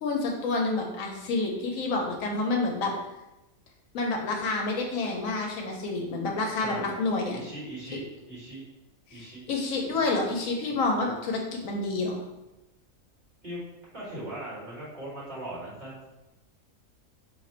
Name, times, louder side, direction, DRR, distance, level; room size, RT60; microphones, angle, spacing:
voice 1, 0.0-2.9 3.9-7.4 9.1-9.2 9.5-12.2, left 3 dB, 75° left, 1 dB, 1.0 m, -28 dB
voice 2, 6.6-6.9 7.3-8.6 9.1-9.5 13.4-13.6 13.9-16.0, right 1 dB, 35° right, -8 dB, 1.3 m, -39 dB
2.7 x 2.4 x 4.2 m, 1.0 s
omnidirectional pair, 1.4 m